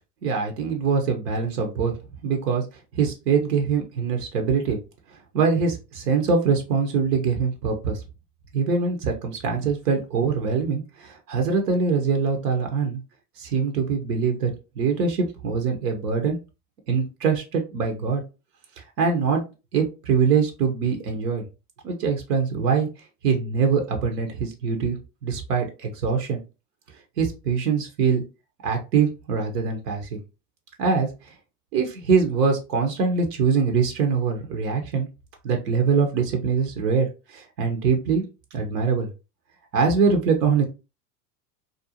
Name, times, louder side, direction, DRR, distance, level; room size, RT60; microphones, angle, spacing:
voice 1, 0.2-1.9 2.2-2.6 2.9-4.8 5.3-8.0 8.5-13.0 13.4-14.5 14.8-16.4 16.9-18.2 19.0-19.4 19.7-21.4 21.8-22.9 23.2-25.0 25.2-26.4 27.2-28.2 28.6-30.2 30.8-31.3 31.7-35.1 35.4-38.2 38.5-39.1 39.7-40.6, right 5 dB, 85° right, 3 dB, 0.7 m, -23 dB
2.5 x 2.1 x 2.7 m, 0.29 s
hypercardioid pair, 90°, 46 cm